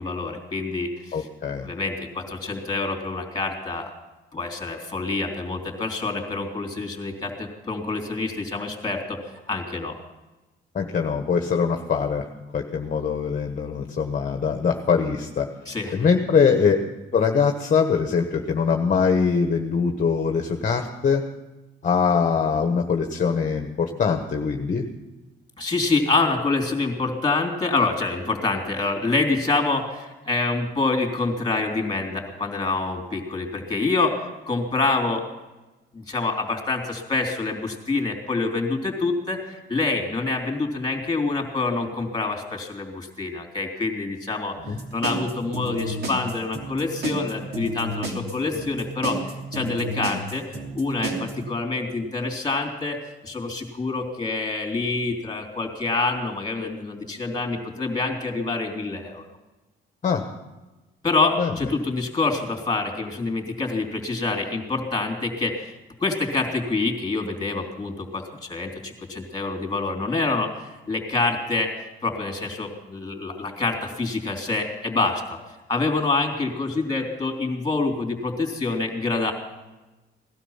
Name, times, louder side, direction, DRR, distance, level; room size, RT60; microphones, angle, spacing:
voice 1, 0.0-1.3 1.6-3.9 4.3-9.2 9.5-10.0 15.7-16.0 25.6-35.3 35.9-50.4 50.7-59.2 61.0-65.7 66.0-70.5 70.9-71.7 72.0-75.4 75.7-79.3, left 3 dB, 20° left, 3 dB, 3.5 m, -26 dB
voice 2, 1.1-1.7 10.7-12.3 12.5-15.5 15.9-16.8 17.1-21.2 21.8-24.9 44.7-44.8 60.0-60.2 61.4-61.6, left 6 dB, 40° left, 4 dB, 1.3 m, -22 dB
sound 1, 44.6-51.3, right 2 dB, 55° right, 3.0 m, -31 dB
18.0 x 12.5 x 5.7 m, 1.1 s
cardioid pair, 90°, 20 cm